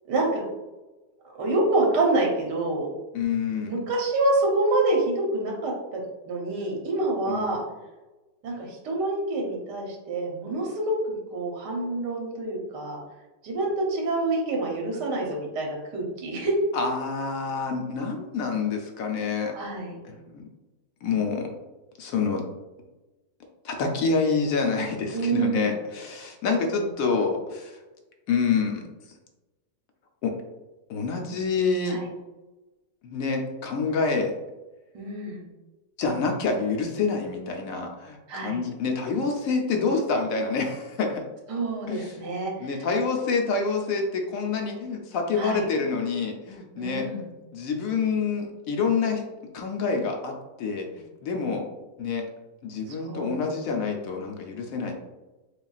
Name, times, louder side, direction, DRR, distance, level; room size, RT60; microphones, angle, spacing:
voice 1, 0.1-0.4 1.4-2.9 3.6-6.0 6.2-7.6 8.4-13.0 13.4-16.6 19.5-20.0 25.1-25.7 26.6-26.8 31.9-32.1 34.9-35.4 38.3-38.6 41.5-42.5 45.4-45.6 46.8-47.2 52.9-53.5, right 2 dB, 80° right, 0 dB, 1.5 m, -27 dB
voice 2, 3.1-3.8 7.3-7.6 16.7-19.5 20.0-20.4 21.0-21.5 22.0-22.5 23.6-27.8 28.3-28.8 30.2-30.3 30.9-32.0 33.0-34.4 36.0-41.2 41.9-47.1 47.5-49.2 49.5-51.7 52.0-52.3 52.6-54.9, left 4 dB, 65° left, 2 dB, 0.9 m, -27 dB
6.5 x 2.4 x 2.4 m, 1.1 s
omnidirectional pair, 1.8 m